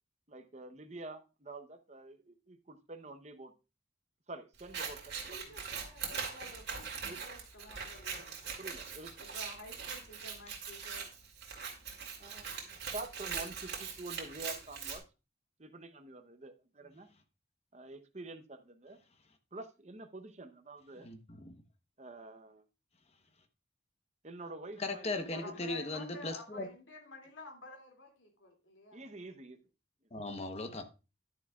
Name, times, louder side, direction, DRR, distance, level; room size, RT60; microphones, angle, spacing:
voice 1, 0.3-3.5 4.3-5.6 7.0-7.3 8.6-9.2 12.2-15.0 15.6-17.1 17.7-19.0 19.5-21.2 22.0-22.6 24.2-25.6 28.9-29.6, right 2 dB, 35° right, 0.8 m, -48 dB
Scissors, 4.6-15.0, right 6 dB, 60° right, 2.4 m, -42 dB
voice 2, 5.1-8.5 9.2-11.1 16.8-17.0 20.9-21.0 25.3-29.1, left 1 dB, 80° left, 2.6 m, -51 dB
voice 3, 21.0-21.5 24.8-26.7 30.1-30.8, left 2 dB, 35° left, 1.0 m, -38 dB
11.0 x 9.6 x 2.4 m
head